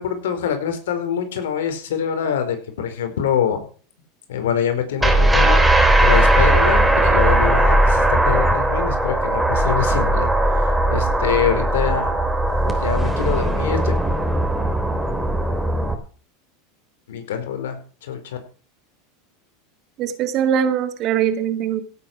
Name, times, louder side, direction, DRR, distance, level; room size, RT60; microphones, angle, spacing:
voice 1, 0.0-3.6 4.3-5.6 6.0-10.3 10.9-12.2 12.6-13.9 17.1-18.4, left 8 dB, 85° left, 7 dB, 4.4 m, -24 dB
sound 1, 5.0-15.9, right 1 dB, 5° right, 3.4 m, -18 dB
voice 2, 20.0-21.8, right 9 dB, 45° right, 9 dB, 2.3 m, -21 dB
17.0 x 8.8 x 6.1 m, 0.40 s
supercardioid pair, 115°, 0 cm